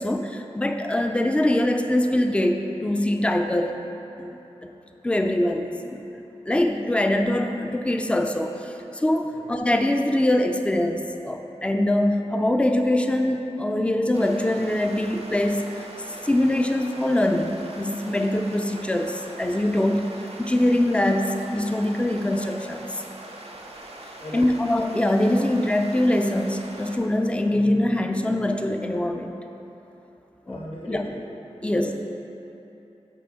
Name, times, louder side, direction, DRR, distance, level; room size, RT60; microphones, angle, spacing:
voice 1, 0.0-3.7 4.2-4.7 5.0-15.9 16.2-22.8 24.3-29.3 30.5-30.6 30.9-31.1 31.6-31.9, left 1 dB, 10° left, 5 dB, 0.4 m, -23 dB
sound 1, 14.1-27.0, right 2 dB, 65° right, 0.6 m, -42 dB
voice 2, 24.2-24.6 30.4-31.3 31.7-31.9, left 1 dB, 55° left, -4 dB, 1.2 m, -37 dB
5.6 x 3.4 x 5.1 m, 3.0 s
wide cardioid pair, 50°, 12 cm